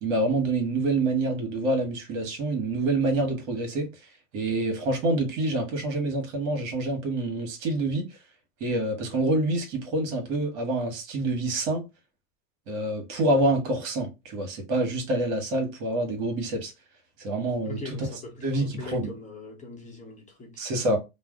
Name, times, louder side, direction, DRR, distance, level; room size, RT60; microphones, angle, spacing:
voice 1, 0.0-3.9 4.3-8.2 8.6-11.8 12.7-16.7 17.2-17.8 18.4-19.1 20.6-21.0, right 2 dB, 65° right, 1.2 m, -27 dB
voice 2, 17.6-20.6, left 1 dB, 20° left, 0.8 m, -41 dB
2.5 x 2.1 x 3.6 m
supercardioid pair, 130°, 40 cm